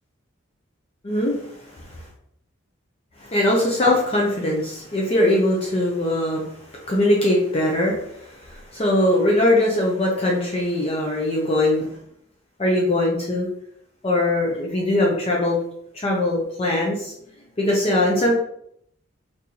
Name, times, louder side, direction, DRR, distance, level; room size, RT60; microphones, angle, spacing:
voice 1, 1.0-2.0 3.2-11.9 12.6-13.5 14.0-15.6 15.9-17.1 17.6-18.3, left 1 dB, 30° left, -3 dB, 0.5 m, -21 dB
3.7 x 2.6 x 2.8 m, 0.72 s
head